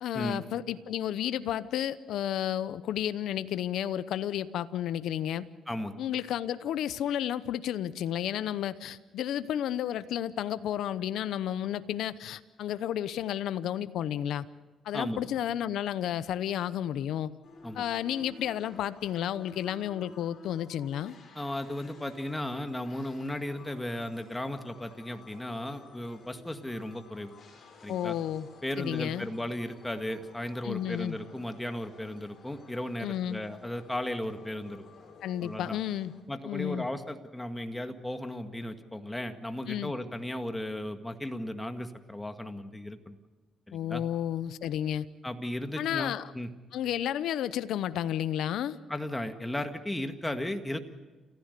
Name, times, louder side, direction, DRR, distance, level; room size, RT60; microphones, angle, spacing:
voice 1, 0.0-5.5 6.0-14.4 14.8-17.3 17.7-21.1 27.9-28.5 28.8-29.3 30.6-31.2 33.0-33.4 35.2-36.1 36.4-36.9 39.7-39.9 43.7-45.1 45.8-46.3 46.7-48.8, left 11 dB, 80° left, 14 dB, 0.8 m, -32 dB
voice 2, 5.7-6.0 14.9-15.2 17.6-17.8 21.4-27.3 27.8-28.1 28.6-34.8 35.4-35.8 36.3-43.2 43.7-44.0 45.2-46.5 48.9-50.8, left 1 dB, 10° left, 7 dB, 1.9 m, -35 dB
sound 1, 17.4-36.2, left 4 dB, 50° left, 6.4 m, -54 dB
29.0 x 15.0 x 6.8 m, 1.2 s
cardioid pair, 90°, 0 cm